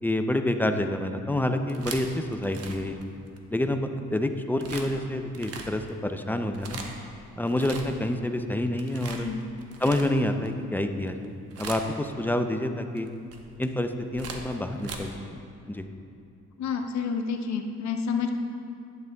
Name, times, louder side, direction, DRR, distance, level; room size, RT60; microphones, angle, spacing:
voice 1, 0.0-3.0 3.5-6.8 7.4-9.3 9.8-13.1 13.6-15.1 15.7-15.9, left 1 dB, 5° left, 7 dB, 0.4 m, -28 dB
sound 1, 1.5-3.7 4.6-4.9 5.3-5.9 6.4-7.1 7.5-8.2 8.5-10.5 11.0-11.3 11.5-12.1 13.0-15.0, right 4 dB, 55° right, 1.0 m, -40 dB
voice 2, 9.1-9.4 16.6-18.3, left 6 dB, 65° left, 4 dB, 0.8 m, -29 dB
10.5 x 9.3 x 2.3 m, 2.7 s
cardioid pair, 90°, 30 cm